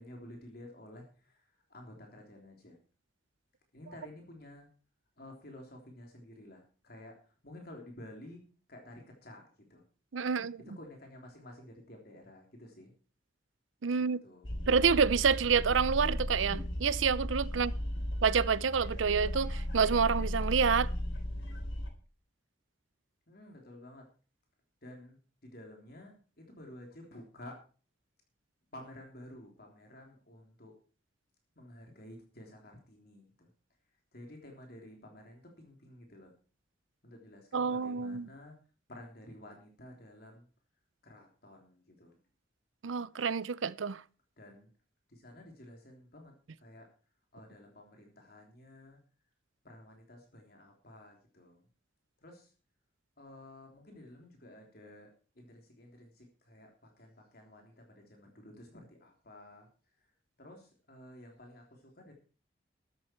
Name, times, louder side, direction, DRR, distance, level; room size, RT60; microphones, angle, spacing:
voice 1, 0.0-2.8 3.7-4.7 5.2-8.4 8.7-9.8 10.6-12.9 14.0-14.5 17.5-18.2 23.3-24.1 24.8-27.6 28.7-30.7 31.5-33.5 34.1-36.3 37.0-38.5 38.9-40.5 41.0-42.2 44.4-44.7 45.1-46.9 47.3-49.0 49.6-51.6 52.2-52.5 53.2-55.1 55.3-59.7 60.0-60.1 60.4-62.1, left 1 dB, 55° left, 3.4 m, -52 dB
voice 2, 10.1-10.6 13.8-14.2 14.7-17.7 18.2-20.9 37.5-38.3 42.8-44.0, right 6 dB, 90° right, 0.6 m, -28 dB
sound 1, 14.4-21.9, equal, 80° left, 3.3 m, -35 dB
14.0 x 12.0 x 4.5 m
head